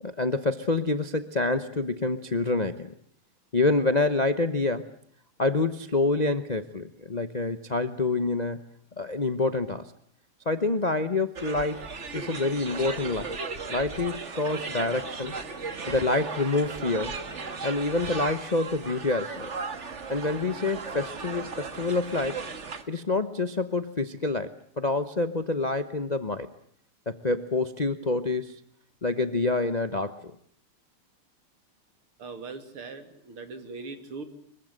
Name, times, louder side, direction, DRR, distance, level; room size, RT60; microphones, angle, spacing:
voice 1, 0.0-2.9 3.5-4.9 5.4-8.6 9.0-9.9 10.5-11.8 12.1-13.4 13.7-15.3 15.9-17.2 17.6-19.5 20.1-22.4 22.9-26.5 27.1-28.6 29.0-30.3, left 3 dB, 35° left, 10 dB, 0.6 m, -27 dB
sound 1, 11.4-22.8, right 4 dB, 35° right, 1.8 m, -36 dB
voice 2, 32.2-34.2, right 4 dB, 75° right, 8 dB, 3.6 m, -40 dB
25.0 x 23.0 x 8.0 m, 0.64 s
omnidirectional pair, 2.4 m